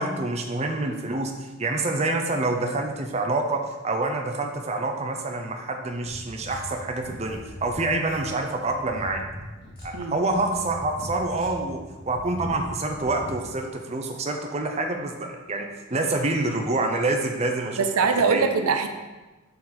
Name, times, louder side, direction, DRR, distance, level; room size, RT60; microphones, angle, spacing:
voice 1, 0.0-9.2 9.8-11.8 12.1-17.8 18.3-18.5, right 2 dB, 30° right, 3 dB, 0.5 m, -27 dB
sound 1, 6.0-13.4, left 1 dB, 45° left, 2.0 m, -40 dB
voice 2, 17.8-18.9, right 5 dB, 90° right, 7 dB, 0.5 m, -22 dB
6.5 x 4.0 x 4.2 m, 1.2 s
head